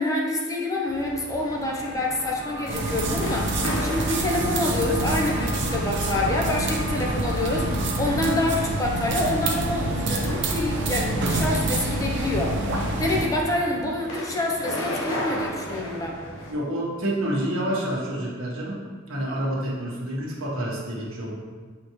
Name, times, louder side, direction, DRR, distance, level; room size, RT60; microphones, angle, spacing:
voice 1, 0.0-3.5 3.8-12.6 13.0-16.2, left 2 dB, 15° left, -1 dB, 0.7 m, -27 dB
sound 1, 0.9-16.5, left 1 dB, 90° left, 1.1 m, -37 dB
Alarm, 2.4-8.0, equal, 65° left, 1.4 m, -40 dB
sound 2, 2.7-13.3, right 2 dB, 60° right, 0.8 m, -26 dB
voice 2, 16.5-21.4, right 1 dB, 85° right, -4 dB, 1.4 m, -28 dB
7.1 x 4.3 x 3.1 m, 1.5 s
head